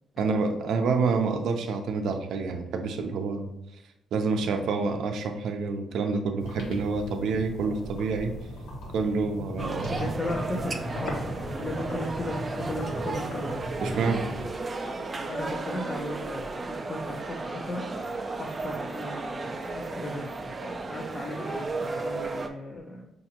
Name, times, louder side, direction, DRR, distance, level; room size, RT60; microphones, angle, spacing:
voice 1, 0.2-3.5 4.1-8.3 8.9-10.0 13.8-14.2, right 4 dB, 75° right, 5 dB, 0.5 m, -28 dB
sound 1, 6.4-14.5, equal, 80° left, 1.1 m, -37 dB
sound 2, 9.6-22.5, right 3 dB, 30° right, 0.5 m, -34 dB
voice 2, 9.9-13.7 15.3-23.1, left 1 dB, 25° left, -2 dB, 0.7 m, -36 dB
5.6 x 2.6 x 2.9 m, 0.86 s
cardioid pair, 90°, 0 cm